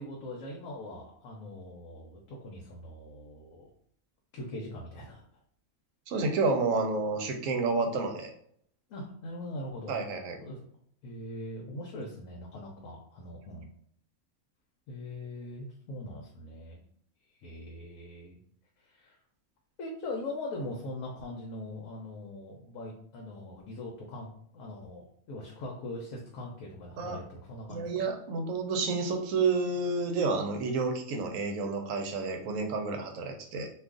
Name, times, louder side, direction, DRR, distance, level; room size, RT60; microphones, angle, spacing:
voice 1, 0.0-3.7 4.3-5.2 8.9-9.9 10.4-10.6 11.0-13.7 14.9-16.8 17.4-18.4 18.8-19.2 19.8-28.0, left 1 dB, 75° left, -1 dB, 1.0 m, -41 dB
voice 2, 6.1-8.3 9.9-10.4 27.0-27.2 27.7-33.7, right 3 dB, 70° right, 3 dB, 0.9 m, -30 dB
2.5 x 2.4 x 3.6 m, 0.65 s
omnidirectional pair, 1.5 m